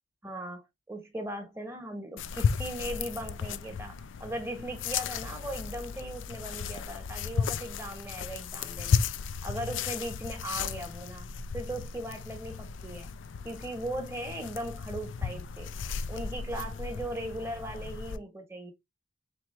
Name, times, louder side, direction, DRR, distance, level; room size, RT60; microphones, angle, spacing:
voice 1, 0.2-9.0 9.4-11.3 11.5-13.1 13.4-15.7 16.1-18.7, right 1 dB, 15° right, 1.1 m, -38 dB
sound 1, 2.2-18.2, left 6 dB, 80° left, 0.4 m, -34 dB
4.5 x 3.5 x 3.2 m
head